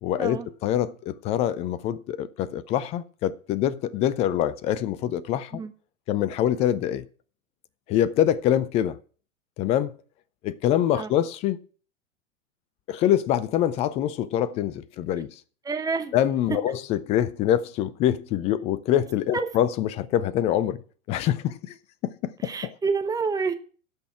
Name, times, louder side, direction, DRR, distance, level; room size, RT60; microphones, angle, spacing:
voice 1, 0.0-5.6 6.1-7.0 7.9-9.0 9.6-9.9 10.4-11.6 12.9-15.3 16.1-20.8 21.1-21.8 22.0-22.7, left 11 dB, 15° left, 0.4 m, -25 dB
voice 2, 15.6-16.1 19.3-19.5 22.4-23.5, right 4 dB, 10° right, 1.0 m, -28 dB
16.5 x 6.1 x 4.6 m
figure-of-eight pair, 100°, 39 cm